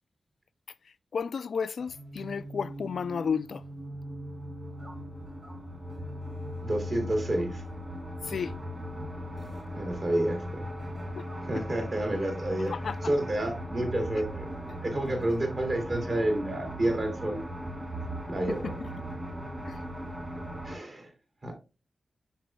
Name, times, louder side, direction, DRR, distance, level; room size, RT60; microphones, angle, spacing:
voice 1, 0.9-3.6 8.2-8.6 11.1-11.3 11.6-11.7 12.7-13.0 14.7-14.8 18.5-18.7 19.6-19.8, left 6 dB, 70° left, 0.3 m, -33 dB
sound 1, 1.8-20.7, equal, 25° right, 2.3 m, -38 dB
voice 2, 6.6-7.6 9.7-10.7 11.4-12.7 13.0-14.5 14.8-17.4 18.3-18.7 20.6-21.1 21.4-21.5, right 1 dB, 45° right, 2.5 m, -29 dB
9.3 x 6.1 x 2.2 m
wide cardioid pair, 115°, 0 cm